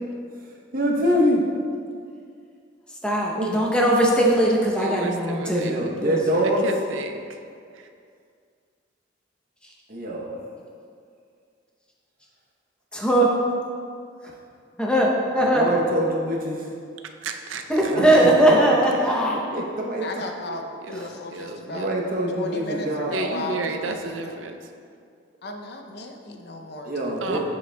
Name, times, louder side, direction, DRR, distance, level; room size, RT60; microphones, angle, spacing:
voice 1, 0.7-1.4 3.4-3.6 5.6-6.6 9.9-10.3 14.2-14.3 15.4-16.7 17.9-18.6 19.5-20.1 21.7-23.1 26.8-27.4, equal, 45° right, -1 dB, 0.8 m, -24 dB
voice 2, 3.0-5.8 6.0-6.2 12.9-13.3 14.8-15.6 17.7-19.4 27.3-27.4, right 1 dB, 5° left, -3 dB, 0.7 m, -20 dB
voice 3, 4.8-5.9 6.6-7.4 7.7-7.9 17.2-18.3 19.0-19.3 20.5-21.9 23.1-24.7 27.2-27.4, right 3 dB, 85° right, 5 dB, 0.5 m, -33 dB
voice 4, 20.0-21.9 22.4-24.4 25.4-27.4, left 2 dB, 55° left, 4 dB, 0.5 m, -35 dB
7.5 x 7.1 x 2.2 m, 2.3 s
head